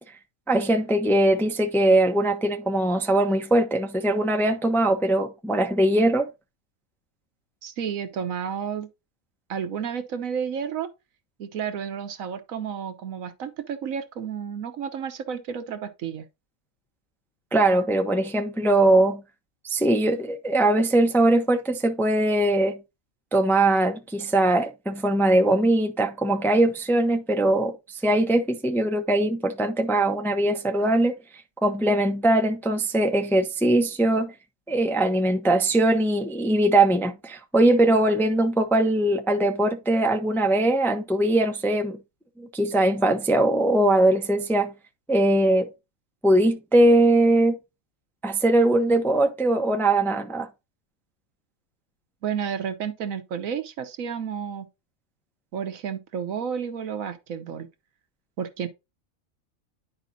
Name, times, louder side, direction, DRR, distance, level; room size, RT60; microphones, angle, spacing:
voice 1, 0.5-6.3 17.5-19.2 19.6-22.8 23.3-31.1 31.6-34.3 34.7-42.0 42.4-44.7 45.1-45.7 46.2-47.6 48.2-50.5, right 1 dB, ahead, 0.5 m, -21 dB
voice 2, 7.6-8.9 9.5-10.9 11.4-16.3 52.2-54.7 55.5-57.7 58.4-58.7, right 7 dB, 75° right, 1.3 m, -31 dB
10.5 x 5.0 x 2.6 m
omnidirectional pair, 1.4 m